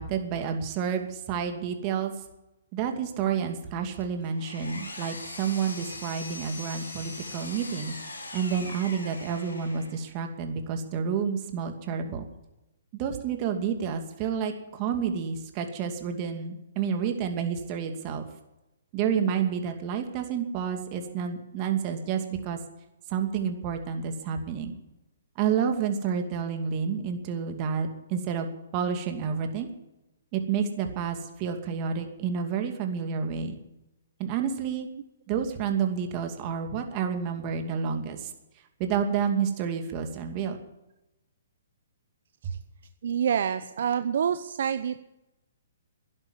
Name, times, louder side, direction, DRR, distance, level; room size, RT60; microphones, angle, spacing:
voice 1, 0.0-2.1 2.7-8.0 8.3-12.3 12.9-18.3 18.9-22.6 23.1-24.8 25.4-29.7 30.3-33.6 34.2-34.9 35.3-38.3 38.8-40.6 42.4-42.5, right 7 dB, 35° right, 5 dB, 2.5 m, -29 dB
Power tool, 4.0-10.1, left 2 dB, 90° left, 4.2 m, -41 dB
voice 2, 43.0-45.0, right 8 dB, 65° right, 11 dB, 0.7 m, -27 dB
12.5 x 11.0 x 9.9 m, 0.95 s
hypercardioid pair, 135°, 0 cm